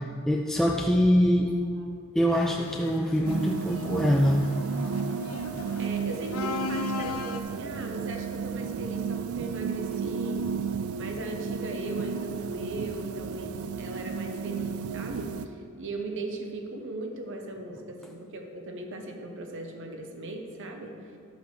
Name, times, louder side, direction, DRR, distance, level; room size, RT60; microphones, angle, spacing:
voice 1, 0.3-1.5 2.1-4.5, equal, ahead, 0 dB, 0.3 m, -23 dB
sound 1, 2.3-7.4, left 5 dB, 90° left, 0.6 m, -38 dB
sound 2, 3.2-15.4, right 6 dB, 80° right, 0.4 m, -33 dB
voice 2, 5.8-10.4 10.9-21.2, right 2 dB, 60° right, 3 dB, 0.9 m, -38 dB
12.0 x 8.0 x 3.3 m, 2.4 s
head